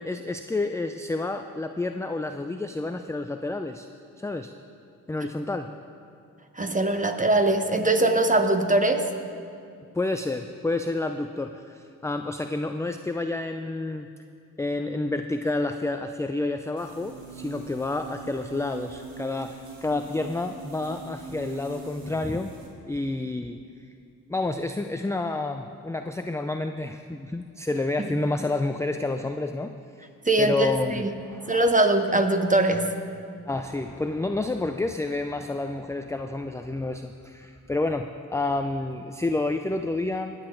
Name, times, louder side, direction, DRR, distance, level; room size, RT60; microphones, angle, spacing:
voice 1, 0.0-3.9 4.2-4.5 5.1-5.7 9.9-14.1 14.6-22.5 22.8-23.6 24.3-29.7 30.4-31.5 33.5-40.5, left 2 dB, 10° left, 6 dB, 0.4 m, -29 dB
voice 2, 6.6-9.1 30.2-31.1 31.5-32.9, right 2 dB, 20° right, 6 dB, 1.3 m, -22 dB
sound 1, 16.8-22.7, right 3 dB, 70° right, 2.2 m, -42 dB
19.5 x 8.0 x 3.9 m, 2.4 s
supercardioid pair, 55°, 37 cm